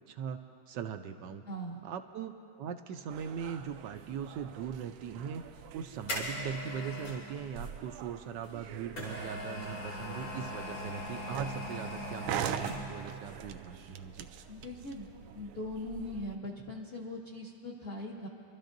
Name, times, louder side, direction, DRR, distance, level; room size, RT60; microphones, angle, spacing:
voice 1, 0.1-0.4 0.7-1.4 1.8-5.4 5.7-14.3, right 8 dB, 75° right, 7 dB, 1.1 m, -40 dB
voice 2, 1.5-1.8 14.5-15.1 15.3-18.3, left 1 dB, 45° left, -2 dB, 0.8 m, -40 dB
sound 1, 3.1-16.4, right 8 dB, 90° right, 1.5 m, -43 dB
sound 2, 5.5-7.3 8.4-13.1 13.4-13.5, left 1 dB, 75° left, 4.2 m, -40 dB
29.5 x 12.5 x 2.6 m, 2.5 s
omnidirectional pair, 2.2 m